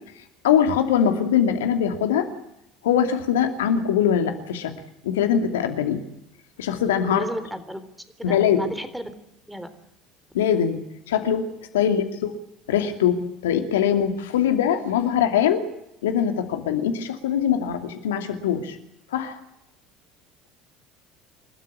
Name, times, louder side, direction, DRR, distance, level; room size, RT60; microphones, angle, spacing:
voice 1, 0.4-2.3 2.8-4.7 5.0-6.0 6.6-7.3 8.2-8.6 10.3-10.8 11.1-11.4 11.7-12.3 12.7-15.6 16.0-18.8 19.1-19.4, left 8 dB, 80° left, 7 dB, 2.7 m, -22 dB
voice 2, 7.0-7.9 8.2-9.1 9.5-9.7 11.8-12.0, equal, 5° right, 12 dB, 3.6 m, -33 dB
27.0 x 13.0 x 9.9 m, 0.82 s
hypercardioid pair, 65°, 0 cm